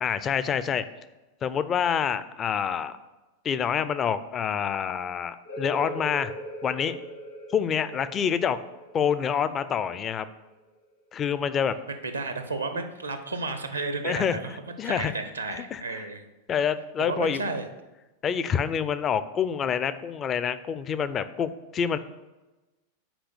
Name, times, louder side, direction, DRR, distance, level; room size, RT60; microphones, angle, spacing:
voice 1, 0.0-0.8 1.4-3.0 3.4-6.3 6.6-7.0 7.5-8.6 8.9-10.3 11.1-11.7 14.0-14.4 14.8-15.1 15.7-15.8 16.5-17.4 18.2-22.0, left 7 dB, 25° left, 14 dB, 0.4 m, -27 dB
sound 1, 5.4-10.8, right 1 dB, 65° left, 2.1 m, -40 dB
voice 2, 11.7-14.6 14.8-16.2 17.0-17.7, right 3 dB, 80° right, 8 dB, 0.7 m, -32 dB
6.0 x 4.9 x 6.5 m, 1.1 s
figure-of-eight pair, 90°, 0 cm